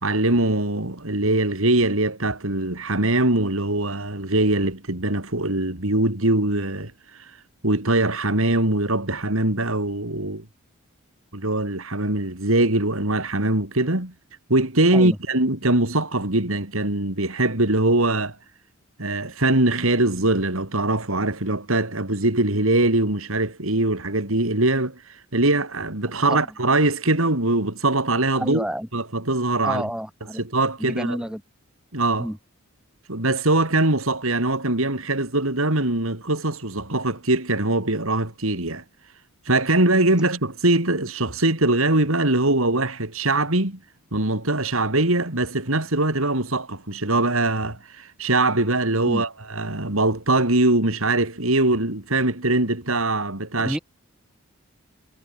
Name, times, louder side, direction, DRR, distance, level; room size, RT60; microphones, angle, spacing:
voice 1, 0.0-6.9 7.2-7.3 7.6-10.4 11.3-14.1 14.5-18.4 19.0-28.6 28.9-29.9 30.4-31.2 31.9-32.3 33.1-38.8 39.5-43.8 44.1-53.8, right 2 dB, 75° right, 3.7 m, -22 dB
voice 2, 26.2-26.5 28.4-28.9 29.6-30.4 30.8-31.4 32.2-32.4 49.1-49.2 53.6-53.8, equal, 5° right, 7.8 m, -29 dB
head